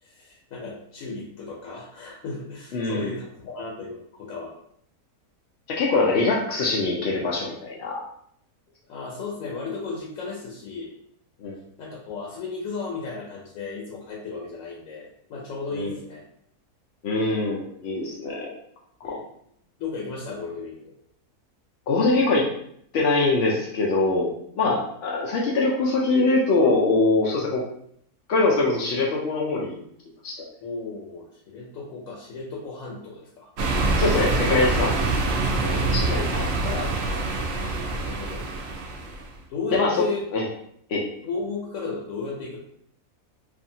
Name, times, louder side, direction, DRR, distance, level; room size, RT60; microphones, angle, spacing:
voice 1, 0.0-4.6 8.9-10.9 11.8-16.2 19.0-19.2 19.8-20.9 24.6-24.8 30.6-33.5 35.7-36.5 37.9-38.4 39.5-40.2 41.2-42.6, left 4 dB, 70° left, -3 dB, 0.9 m, -34 dB
voice 2, 2.7-3.1 5.7-8.0 11.4-11.6 15.7-15.9 17.0-18.5 19.1-19.2 21.9-22.5 22.9-24.3 24.6-27.6 28.3-29.7 30.2-30.5 33.9-35.2 35.6-37.2 39.7-40.0 40.3-40.4 40.9-41.1, left 3 dB, 90° left, -2 dB, 0.5 m, -23 dB
sound 1, 33.6-39.3, right 2 dB, 75° right, 0.6 m, -25 dB
2.6 x 2.4 x 2.7 m, 0.68 s
omnidirectional pair, 1.6 m